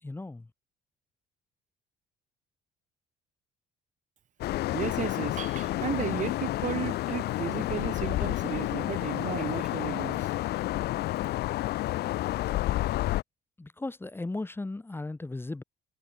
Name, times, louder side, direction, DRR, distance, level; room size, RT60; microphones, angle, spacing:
voice 1, 0.0-0.5 13.6-15.6, left 2 dB, 15° left, 2.1 m, -36 dB
sound 1, 4.4-13.2, left 16 dB, 75° left, 1.1 m, -30 dB
voice 2, 4.7-10.3, right 9 dB, 50° right, 2.1 m, -34 dB
cardioid pair, 110°, 17 cm